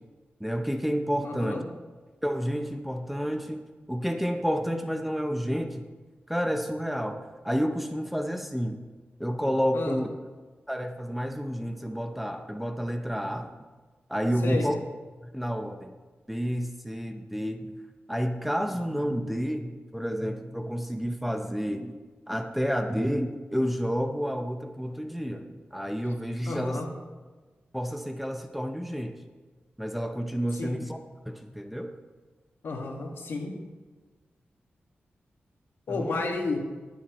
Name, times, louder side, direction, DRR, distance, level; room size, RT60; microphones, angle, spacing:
voice 1, 0.4-1.6 2.2-3.6 3.9-5.8 6.3-8.8 9.2-10.1 10.7-13.5 14.1-14.8 15.3-15.9 16.3-17.7 18.1-22.0 22.3-26.8 27.7-29.2 29.8-31.0 31.3-31.9 35.9-36.2, equal, 5° right, 6 dB, 0.7 m, -30 dB
voice 2, 1.2-1.6 9.7-10.0 14.4-14.7 26.5-26.9 30.6-30.7 32.6-33.5 35.9-36.6, left 3 dB, 80° left, 1 dB, 1.8 m, -31 dB
21.0 x 7.2 x 3.1 m, 1.3 s
wide cardioid pair, 135°, 4 cm